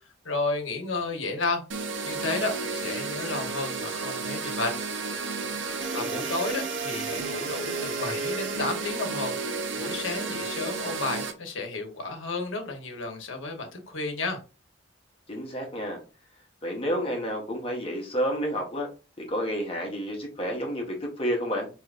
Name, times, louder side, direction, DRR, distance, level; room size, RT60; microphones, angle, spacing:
voice 1, 0.2-1.6 2.0-4.7 5.9-9.3 9.7-14.4, left 3 dB, 80° left, 1.0 m, -32 dB
sound 1, 1.7-11.3, right 4 dB, 70° right, 0.6 m, -32 dB
voice 2, 5.9-6.2 15.3-16.0 16.6-18.9 19.2-21.7, equal, 30° left, 0.9 m, -30 dB
4.9 x 2.9 x 2.4 m
head